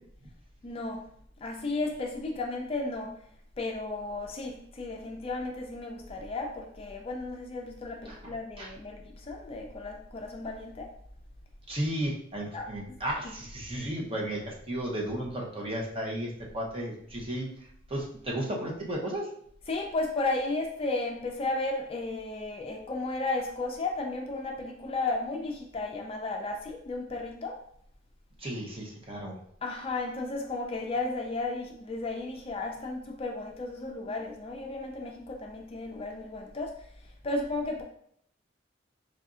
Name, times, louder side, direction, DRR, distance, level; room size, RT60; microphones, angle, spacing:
voice 1, 0.6-1.0 1.4-3.1 3.6-10.9 12.5-12.7 19.7-27.5 29.6-36.7 37.2-37.8, left 2 dB, 30° left, 2 dB, 0.4 m, -34 dB
voice 2, 8.0-8.7 11.7-17.5 17.9-19.3 28.4-29.4, right 1 dB, 30° right, -1 dB, 0.7 m, -34 dB
4.7 x 2.5 x 2.4 m, 0.67 s
head